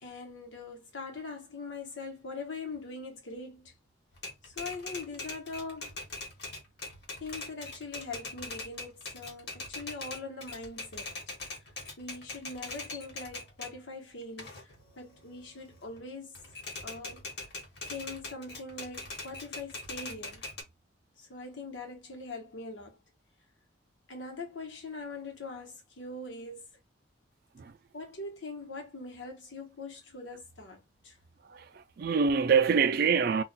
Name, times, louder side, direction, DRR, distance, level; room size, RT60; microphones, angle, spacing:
voice 1, 0.0-3.7 4.4-6.0 7.2-11.1 12.0-16.4 16.8-17.3 17.9-20.4 21.2-23.0 24.1-26.7 27.9-31.2, left 3 dB, 80° left, 1.0 m, -42 dB
Typewriter, 4.1-13.8 14.2-16.0 16.3-20.6, left 3 dB, 60° left, 1.1 m, -42 dB
voice 2, 31.5-33.4, right 6 dB, 50° right, 0.3 m, -25 dB
2.4 x 2.2 x 3.9 m
head